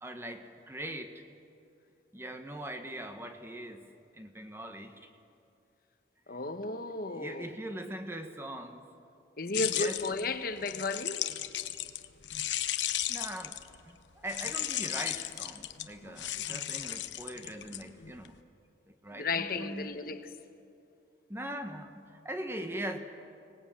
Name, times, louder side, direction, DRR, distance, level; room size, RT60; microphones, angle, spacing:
voice 1, 0.0-1.2 2.1-3.9 4.1-5.1 7.1-8.8 9.5-10.0 13.1-13.6 13.8-14.0 14.2-18.4 18.9-19.9 21.3-23.0, right 1 dB, 15° right, 1.3 m, -41 dB
voice 2, 6.3-7.5 9.4-11.2 19.1-20.3, left 3 dB, 50° left, 1.2 m, -34 dB
sound 1, 9.5-13.8 14.3-18.3, left 12 dB, 75° left, 1.0 m, -35 dB
25.0 x 19.0 x 8.9 m
head